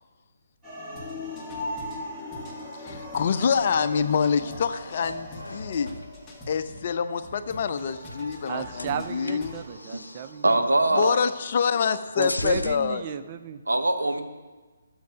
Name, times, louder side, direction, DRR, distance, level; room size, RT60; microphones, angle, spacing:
sound 1, 0.6-10.7, left 1 dB, 10° right, 2.2 m, -40 dB
sound 2, 1.0-6.9 7.2-9.7, left 1 dB, 5° left, 2.0 m, -46 dB
voice 1, 2.6-6.0 6.5-9.6 10.9-13.0, left 6 dB, 45° left, 11 dB, 0.6 m, -26 dB
sound 3, 5.4-6.9 7.6-8.5 8.7-10.4 11.0-11.2 11.4-12.8, left 2 dB, 85° left, 0.5 m, -38 dB
voice 2, 8.5-10.6 12.2-13.6, right 8 dB, 35° right, 10 dB, 0.6 m, -34 dB
voice 3, 10.4-11.2 13.7-14.2, right 2 dB, 85° right, 7 dB, 1.0 m, -22 dB
11.5 x 7.3 x 5.1 m, 1.3 s
figure-of-eight pair, 140°, 0 cm